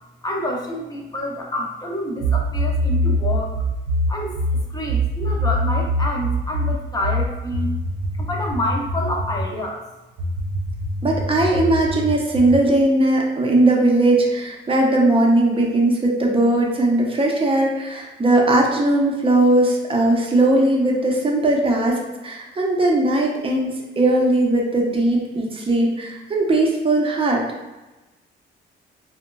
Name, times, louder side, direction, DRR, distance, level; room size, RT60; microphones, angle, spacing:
voice 1, 0.2-3.5 4.1-4.4 4.7-7.7 8.1-9.8, left 1 dB, 20° left, -1 dB, 0.6 m, -28 dB
sound 1, 2.2-9.5 10.2-12.7, equal, 70° right, 0.4 m, -23 dB
voice 2, 11.0-23.7 24.0-27.4, right 2 dB, 25° right, -1 dB, 0.7 m, -19 dB
3.9 x 2.1 x 2.2 m, 1.1 s
cardioid pair, 90°, 20 cm